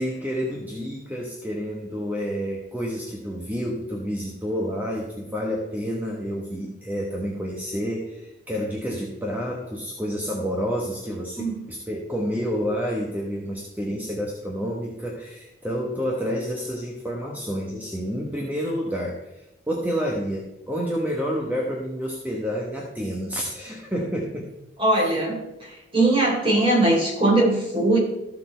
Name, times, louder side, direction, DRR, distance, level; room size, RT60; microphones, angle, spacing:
voice 1, 0.0-24.5, equal, 10° right, -2 dB, 1.2 m, -29 dB
voice 2, 24.8-28.0, right 2 dB, 30° right, -2 dB, 3.6 m, -21 dB
14.0 x 6.6 x 4.5 m, 0.91 s
head